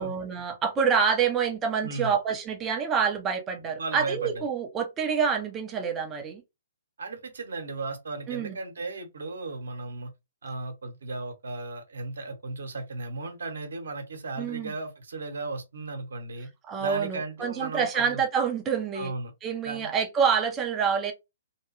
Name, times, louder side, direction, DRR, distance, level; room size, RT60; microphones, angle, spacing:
voice 1, 0.0-6.4 8.3-8.6 14.4-14.7 16.7-19.1 19.4-21.1, right 6 dB, 15° right, 0.6 m, -27 dB
voice 2, 1.8-2.2 3.8-4.5 7.0-10.1 10.4-16.5 16.8-18.2 18.9-19.3 19.6-19.9, right 3 dB, 60° right, 0.9 m, -36 dB
2.8 x 2.2 x 3.1 m
figure-of-eight pair, 120°, 0 cm